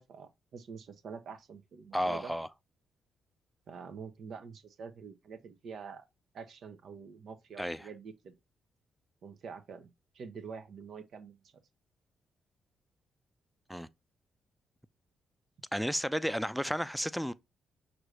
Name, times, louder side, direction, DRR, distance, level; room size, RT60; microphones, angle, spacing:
voice 1, 0.0-2.3 3.7-6.0 6.3-8.3 9.2-9.9 10.1-11.5, right 6 dB, 65° right, 0.7 m, -46 dB
voice 2, 1.9-2.5 7.6-7.9 13.7-13.9 15.7-17.3, equal, ahead, 0.5 m, -32 dB
6.0 x 2.6 x 3.2 m
supercardioid pair, 55°, 0 cm